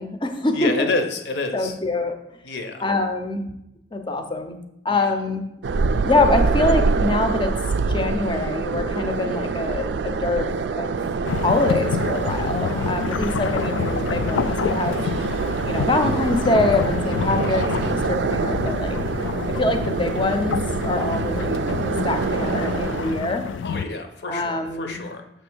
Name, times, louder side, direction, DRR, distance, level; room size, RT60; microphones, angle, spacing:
voice 1, 0.0-0.9 1.5-2.2 2.8-3.5 3.9-4.6 4.8-5.5 6.0-7.5 7.9-11.0 11.4-15.0 15.6-19.0 19.5-23.4 24.3-25.0, left 2 dB, 25° left, 6 dB, 0.6 m, -24 dB
voice 2, 0.5-1.8 2.4-2.9 4.8-5.1 23.6-25.2, left 3 dB, 65° left, 5 dB, 0.9 m, -28 dB
sound 1, 5.6-23.6, right 4 dB, 70° right, 0.4 m, -25 dB
sound 2, 11.2-23.9, left 6 dB, 85° left, 0.3 m, -28 dB
6.8 x 3.4 x 6.1 m, 0.84 s
head